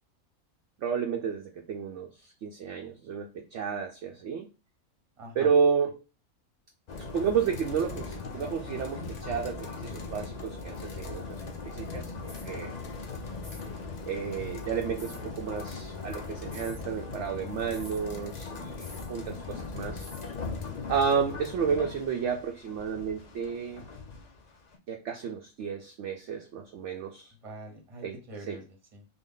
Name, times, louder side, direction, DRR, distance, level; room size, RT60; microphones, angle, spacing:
voice 1, 0.8-4.5 5.4-6.0 7.0-11.4 11.7-12.8 14.1-20.1 20.9-23.8 24.9-27.3 28.0-28.2 28.5-28.6, right 6 dB, 65° right, 3 dB, 0.7 m, -31 dB
voice 2, 5.2-5.5 19.3-19.6 27.4-29.1, right 1 dB, 30° right, 2 dB, 0.8 m, -45 dB
sound 1, 6.9-24.8, left 4 dB, 65° left, 0.4 m, -39 dB
sound 2, 12.2-12.5 13.4-13.7 15.0-15.2 16.4-16.8 17.7-18.0 18.8-19.1 20.0-20.3, equal, 25° left, 0.7 m, -49 dB
3.6 x 2.2 x 3.7 m, 0.30 s
omnidirectional pair, 1.5 m